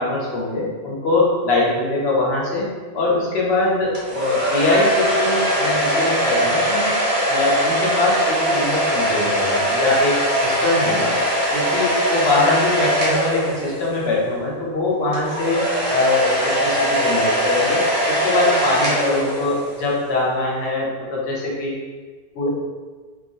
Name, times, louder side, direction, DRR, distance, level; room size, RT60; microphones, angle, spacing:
voice 1, 0.0-2.7 2.9-6.9 7.3-11.1 11.5-21.7 22.3-22.5, left 2 dB, 85° left, -4 dB, 0.9 m, -22 dB
sound 1, 3.9-14.1 15.1-19.9, equal, 65° right, 1.0 m, -21 dB
2.3 x 2.2 x 2.6 m, 1.4 s
omnidirectional pair, 1.0 m